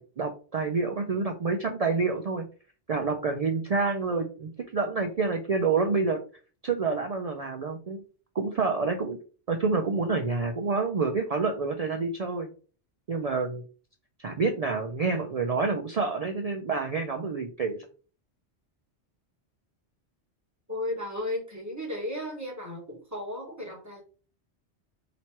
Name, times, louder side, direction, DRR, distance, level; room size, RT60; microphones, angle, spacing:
voice 1, 0.0-2.4 2.9-6.2 6.6-8.0 8.4-9.2 9.5-12.5 13.1-13.6 14.2-17.8, right 4 dB, 60° right, 4 dB, 0.4 m, -28 dB
voice 2, 20.7-24.0, left 1 dB, 15° right, -2 dB, 1.3 m, -34 dB
3.0 x 2.9 x 4.4 m, 0.38 s
omnidirectional pair, 1.1 m